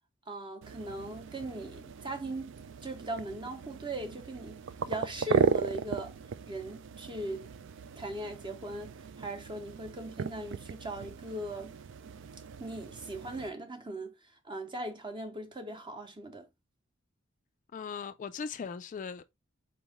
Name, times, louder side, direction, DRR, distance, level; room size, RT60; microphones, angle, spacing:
voice 1, 0.3-2.5 2.8-4.6 4.9-6.1 6.5-7.5 8.0-8.9 9.2-11.7 12.6-14.1 14.4-16.4, right 1 dB, 25° right, 0.8 m, -39 dB
sound 1, 0.6-13.5, right 6 dB, 60° right, 0.4 m, -36 dB
voice 2, 17.7-19.3, left 6 dB, 40° left, 0.3 m, -39 dB
4.4 x 3.0 x 3.5 m
head